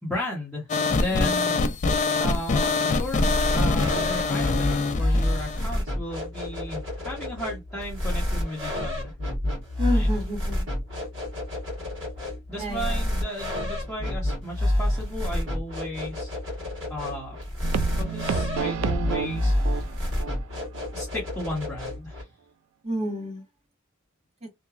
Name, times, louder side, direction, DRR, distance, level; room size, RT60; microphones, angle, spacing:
voice 1, 0.0-1.6 2.2-9.1 9.8-10.1 12.5-16.3 16.6-16.7 16.9-17.4 18.0-19.9 20.9-22.2, equal, 5° left, 0.9 m, -34 dB
sound 1, 0.7-5.7, left 3 dB, 35° left, 0.4 m, -24 dB
sound 2, 3.0-22.2, left 1 dB, 65° right, 1.4 m, -29 dB
voice 2, 9.8-10.6 12.6-13.0 22.8-23.4 24.4-24.5, equal, 30° right, 1.2 m, -30 dB
sound 3, 17.6-20.4 20.7-20.9 21.3-21.4, right 6 dB, 80° right, 0.3 m, -30 dB
2.8 x 2.2 x 2.4 m
head